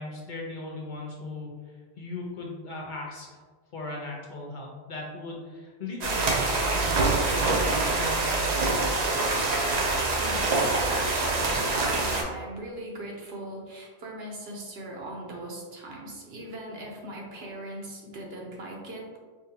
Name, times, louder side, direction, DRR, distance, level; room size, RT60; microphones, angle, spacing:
voice 1, 0.0-3.3 3.7-9.3, left 2 dB, 55° left, -2 dB, 0.7 m, -38 dB
sound 1, 6.0-12.2, right 3 dB, 50° right, 0.6 m, -25 dB
voice 2, 10.2-19.2, right 1 dB, 75° right, -1 dB, 1.0 m, -40 dB
4.7 x 2.3 x 2.7 m, 1.5 s
omnidirectional pair, 1.1 m